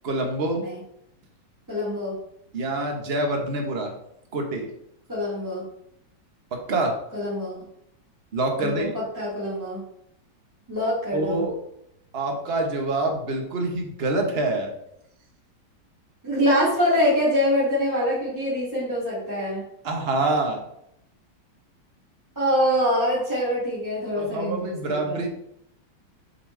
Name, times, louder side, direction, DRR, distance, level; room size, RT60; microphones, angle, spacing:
voice 1, 0.0-0.6 2.5-3.9 4.3-4.7 6.5-6.9 8.3-8.9 11.1-11.5 12.1-14.7 19.8-20.6 24.1-25.3, right 2 dB, 35° right, 2 dB, 1.1 m, -26 dB
voice 2, 1.7-2.1 5.1-5.6 7.1-7.6 8.6-9.8 10.7-11.4 16.2-19.6 22.4-25.2, equal, 10° right, -9 dB, 2.2 m, -24 dB
7.2 x 5.1 x 3.3 m, 0.76 s
omnidirectional pair, 2.3 m